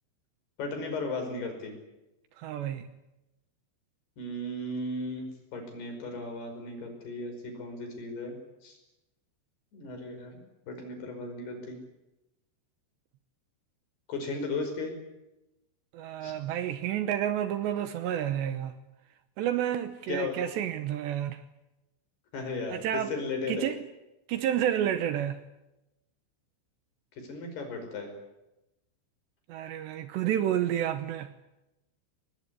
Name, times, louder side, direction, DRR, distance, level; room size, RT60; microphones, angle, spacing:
voice 1, 0.6-1.7 4.2-8.4 8.6-8.8 9.7-10.4 10.7-11.8 14.1-15.0 16.2-16.3 20.1-20.3 22.3-23.7 27.2-28.1, left 2 dB, 55° left, 7.1 m, -35 dB
voice 2, 2.4-2.9 15.9-18.8 19.4-21.4 22.7-23.1 23.5-23.8 24.3-25.4 29.5-31.3, right 10 dB, 75° right, 2.9 m, -30 dB
24.5 x 20.0 x 9.9 m
omnidirectional pair, 5.7 m